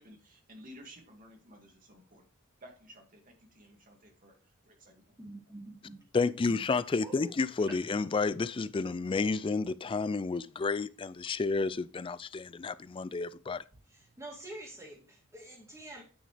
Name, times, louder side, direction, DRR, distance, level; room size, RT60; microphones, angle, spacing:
voice 1, 0.0-2.3 2.6-5.0, equal, 40° right, 2.2 m, -54 dB
voice 2, 5.2-6.0 6.5-6.6 7.0-7.4 13.9-16.0, right 2 dB, 15° right, 2.6 m, -47 dB
voice 3, 6.1-13.6, left 4 dB, 25° left, 0.3 m, -31 dB
9.5 x 6.0 x 3.3 m
head